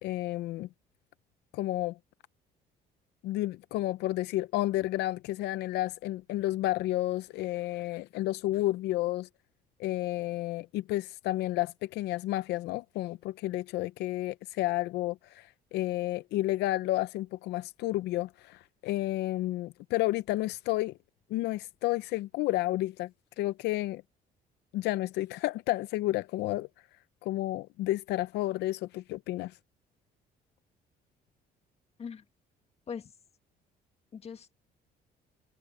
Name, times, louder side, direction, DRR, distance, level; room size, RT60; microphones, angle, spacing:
voice 1, 0.0-0.7 1.5-2.0 3.2-9.3 9.8-21.0 21.3-23.1 23.4-24.0 24.7-26.7 27.2-29.6, left 16 dB, 80° left, 0.6 m, -31 dB
voice 2, 34.1-34.5, left 6 dB, 40° left, 1.7 m, -40 dB
cardioid pair, 110°, 17 cm